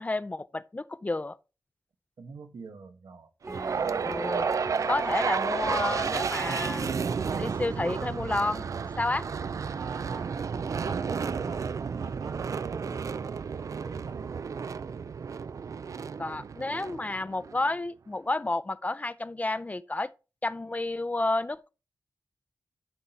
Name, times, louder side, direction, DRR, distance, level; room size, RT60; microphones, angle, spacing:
voice 1, 0.0-1.4 4.0-4.5 4.9-6.9 7.4-8.7 9.0-9.3 12.9-13.0 16.2-20.1 20.4-21.7, left 2 dB, 20° left, 0.4 m, -31 dB
voice 2, 2.2-3.3 6.4-6.8 7.3-7.5 9.7-10.4 10.6-12.9 13.7-14.3, right 4 dB, 80° right, 1.1 m, -42 dB
sound 1, 3.4-11.0, right 2 dB, 35° right, 1.6 m, -41 dB
sound 2, 3.5-17.7, right 6 dB, 55° right, 0.3 m, -32 dB
12.0 x 4.1 x 4.4 m
wide cardioid pair, 135°, 7 cm